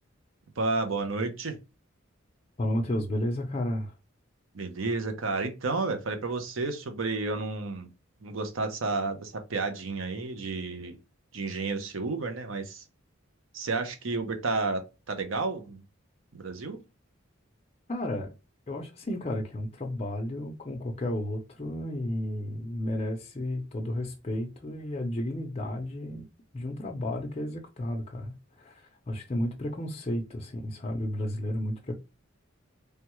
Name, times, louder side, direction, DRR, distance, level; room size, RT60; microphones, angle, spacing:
voice 1, 0.6-1.5 4.5-7.9 8.2-11.0 11.3-12.8 13.5-15.8 16.3-16.8, right 3 dB, 75° right, 0.7 m, -31 dB
voice 2, 2.6-3.9 17.9-18.3 18.7-26.3 26.5-32.0, left 1 dB, 30° left, 0.5 m, -32 dB
3.3 x 2.2 x 2.9 m
head